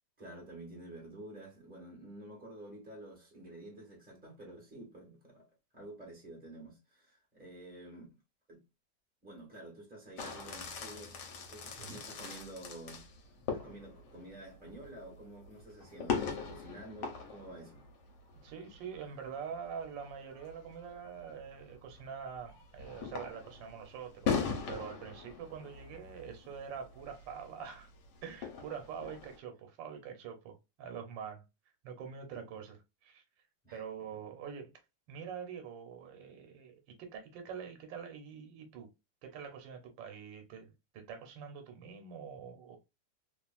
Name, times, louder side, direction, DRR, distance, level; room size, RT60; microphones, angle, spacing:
voice 1, 0.2-5.4 5.7-8.1 8.5-8.6 9.2-11.2 11.5-13.0 13.5-17.8 33.6-33.8, right 1 dB, 5° right, 1.2 m, -50 dB
sound 1, 10.2-29.4, left 6 dB, 75° left, 1.4 m, -42 dB
voice 2, 18.4-27.9 28.2-31.4 31.8-33.2 33.7-34.7 35.1-38.9 39.2-42.8, right 7 dB, 90° right, 1.5 m, -45 dB
3.1 x 2.4 x 2.3 m
omnidirectional pair, 1.9 m